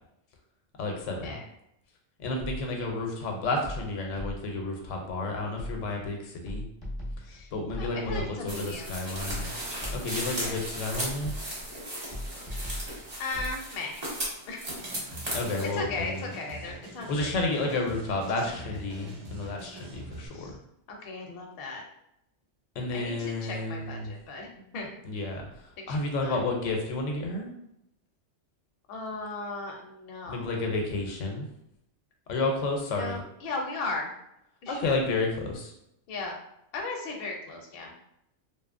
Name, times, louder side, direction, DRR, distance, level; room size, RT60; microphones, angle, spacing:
voice 1, 0.8-1.3 2.2-6.6 7.5-9.6 9.9-11.3 15.3-16.3 17.1-20.6 22.8-24.1 25.1-27.5 30.3-31.5 32.3-33.2 34.7-35.7, left 2 dB, 85° left, 2 dB, 0.9 m, -31 dB
sound 1, 2.4-2.9 3.6-4.7 5.6-6.1 6.5-8.6 9.3-10.3 11.2-11.7 12.1-13.6, left 1 dB, 25° left, 0.6 m, -39 dB
voice 2, 7.2-9.4 10.4-10.6 13.2-14.0 14.5-14.6 15.7-17.4 18.3-18.5 20.3-20.6 20.9-21.8 22.9-24.9 25.8-26.4 28.9-30.5 32.9-34.1 34.6-35.0 36.1-36.3 36.7-37.9, left 3 dB, 60° left, 1 dB, 0.7 m, -37 dB
sound 2, 8.5-15.7, right 1 dB, 35° right, 0.9 m, -36 dB
sound 3, 14.8-20.3, right 1 dB, 60° right, 0.4 m, -44 dB
2.7 x 2.2 x 2.4 m, 0.79 s
omnidirectional pair, 1.3 m